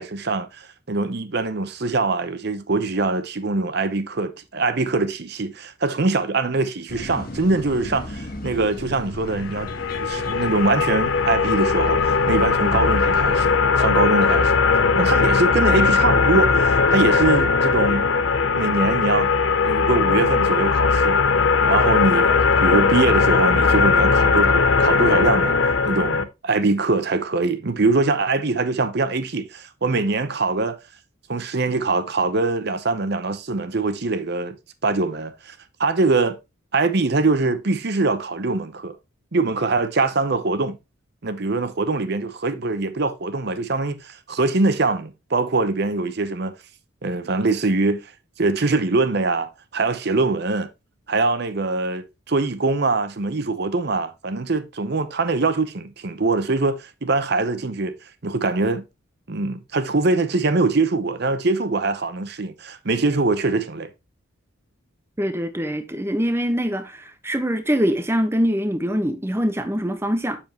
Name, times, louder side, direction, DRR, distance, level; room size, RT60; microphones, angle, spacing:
voice 1, 0.0-9.7 10.0-18.1 18.5-19.3 19.6-21.2 21.7-25.6 25.8-30.8 31.3-34.6 34.8-36.4 36.7-39.0 39.3-40.8 41.2-46.6 47.0-48.0 48.4-50.7 51.1-57.9 58.2-58.8 59.3-63.9, right 3 dB, 50° right, 0.7 m, -23 dB
sound 1, 6.9-13.6, left 1 dB, 45° left, 1.2 m, -35 dB
sound 2, 9.5-26.2, left 5 dB, 65° left, 0.6 m, -19 dB
voice 2, 65.2-70.4, equal, 10° right, 0.7 m, -23 dB
7.2 x 7.1 x 2.9 m
head